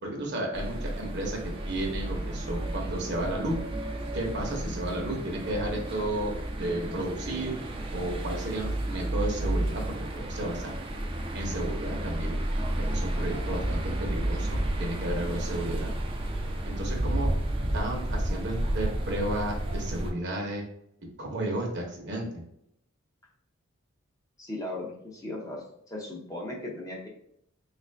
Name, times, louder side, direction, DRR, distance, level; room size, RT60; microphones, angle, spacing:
voice 1, 0.0-3.5 4.1-6.3 6.6-7.5 7.9-10.7 11.3-12.4 12.8-15.9 16.7-17.3 17.7-20.6 21.2-22.3, right 1 dB, 55° right, 0 dB, 0.9 m, -33 dB
sound 1, 0.5-20.1, right 1 dB, 25° right, 0.5 m, -31 dB
voice 2, 24.4-27.1, left 1 dB, 15° left, -2 dB, 0.6 m, -37 dB
3.5 x 2.5 x 3.3 m, 0.74 s
head